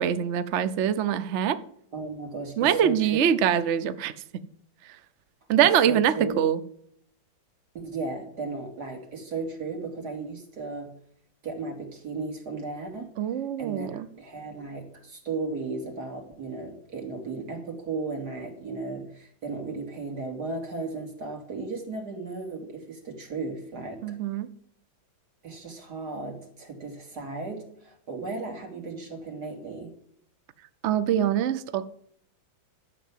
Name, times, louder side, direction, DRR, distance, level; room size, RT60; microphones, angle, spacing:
voice 1, 0.0-1.6 2.6-4.1 5.5-6.6 13.2-14.1 24.0-24.5 30.8-31.9, right 9 dB, 70° right, 13 dB, 0.6 m, -24 dB
voice 2, 1.9-3.2 5.9-6.3 7.7-10.9 11.4-13.1 13.6-24.0 25.4-29.9, right 3 dB, 50° right, 3 dB, 3.0 m, -35 dB
12.0 x 7.0 x 7.3 m, 0.66 s
omnidirectional pair, 2.2 m